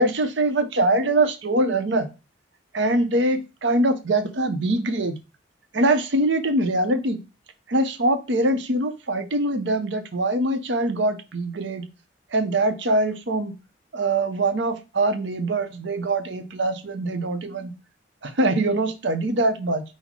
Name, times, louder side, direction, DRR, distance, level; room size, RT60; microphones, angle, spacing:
voice 1, 0.0-2.1 2.7-5.2 5.7-7.2 7.7-11.9 12.3-13.5 13.9-17.7 18.2-19.8, right 2 dB, 70° right, 7 dB, 0.7 m, -23 dB
5.6 x 2.0 x 4.6 m, 0.29 s
head